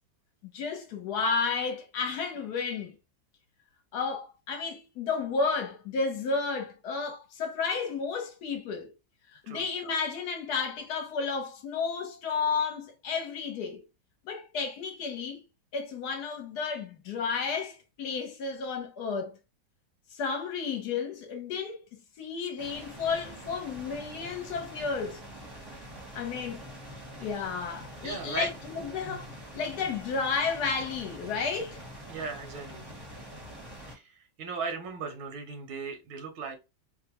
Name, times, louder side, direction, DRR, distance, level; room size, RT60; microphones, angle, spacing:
voice 1, 0.5-3.0 3.9-8.9 9.3-13.8 14.2-15.4 15.7-19.4 20.1-21.8 22.2-25.2 26.1-26.6 27.2-31.8, left 5 dB, 65° left, 1.2 m, -32 dB
sound 1, 22.6-34.0, equal, 20° right, 0.7 m, -45 dB
voice 2, 28.0-28.5 29.1-29.2 32.1-32.8 33.9-34.0 34.4-36.6, right 5 dB, 80° right, 1.6 m, -37 dB
3.4 x 2.1 x 2.9 m
omnidirectional pair, 2.1 m